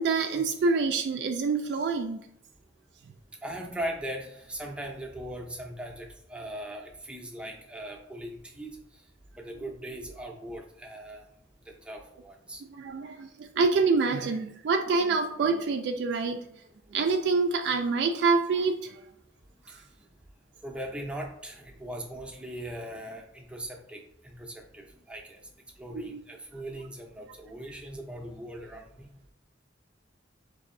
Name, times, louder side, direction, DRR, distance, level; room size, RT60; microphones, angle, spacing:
voice 1, 0.0-2.3 12.7-16.4 16.9-19.0 19.7-19.8 25.9-26.2, right 4 dB, 65° right, 5 dB, 0.3 m, -26 dB
voice 2, 3.4-8.8 9.4-11.3 11.7-12.6 19.7-19.8 20.6-24.0 24.3-25.4 25.8-29.1, right 1 dB, 5° right, 1 dB, 0.5 m, -39 dB
5.0 x 2.6 x 2.5 m, 0.78 s
head